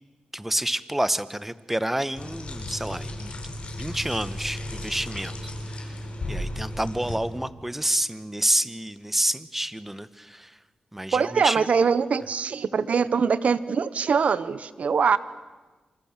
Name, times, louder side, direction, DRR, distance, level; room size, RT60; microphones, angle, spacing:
voice 1, 0.3-3.3 3.8-6.0 6.3-10.6 10.9-11.7, right 1 dB, 10° right, 14 dB, 1.4 m, -28 dB
sound 1, 2.1-7.2, left 1 dB, 55° left, 6.6 m, -35 dB
voice 2, 11.1-15.2, right 6 dB, 75° right, 15 dB, 1.2 m, -23 dB
27.5 x 27.0 x 7.6 m, 1.2 s
cardioid pair, 60°, 2 cm